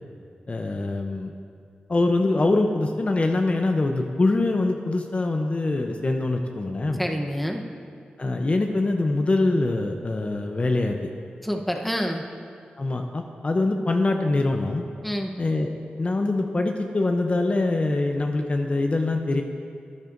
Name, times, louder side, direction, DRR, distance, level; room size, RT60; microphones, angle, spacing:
voice 1, 0.5-1.3 1.9-7.0 8.2-11.0 12.8-14.9 15.4-15.7 16.0-19.4, left 2 dB, 40° left, 4 dB, 0.6 m, -24 dB
voice 2, 7.0-7.6 11.4-12.2 15.0-15.3, equal, ahead, 2 dB, 0.9 m, -27 dB
12.0 x 10.5 x 2.6 m, 2.3 s
cardioid pair, 65°, 3 cm